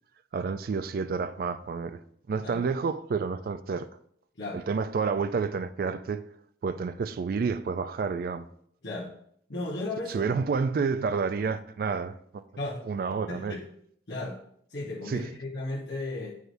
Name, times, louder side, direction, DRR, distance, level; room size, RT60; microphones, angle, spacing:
voice 1, 0.3-2.0 2.3-3.9 4.5-6.3 6.6-8.5 10.1-12.4 12.8-13.6 15.1-15.3, right 5 dB, 55° right, 0.3 m, -29 dB
voice 2, 9.5-10.4 12.6-12.8 13.3-13.6 14.1-14.4 14.7-16.4, left 2 dB, 70° left, 1.1 m, -35 dB
7.7 x 4.8 x 2.6 m
head